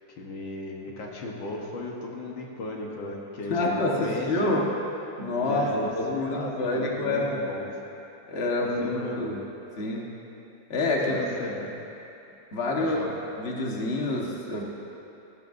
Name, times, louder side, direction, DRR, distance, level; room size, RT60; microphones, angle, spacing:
voice 1, 0.2-4.6 5.4-7.8 8.6-9.4 11.1-11.8 12.8-13.1, left 2 dB, 80° left, -1 dB, 2.0 m, -35 dB
voice 2, 3.5-4.7 5.2-5.7 5.9-7.4 8.3-9.4 9.8-10.1 10.7-11.3 12.5-13.0 13.4-14.6, left 2 dB, 35° left, -2 dB, 1.5 m, -27 dB
18.5 x 13.5 x 2.6 m, 2.8 s
omnidirectional pair, 2.0 m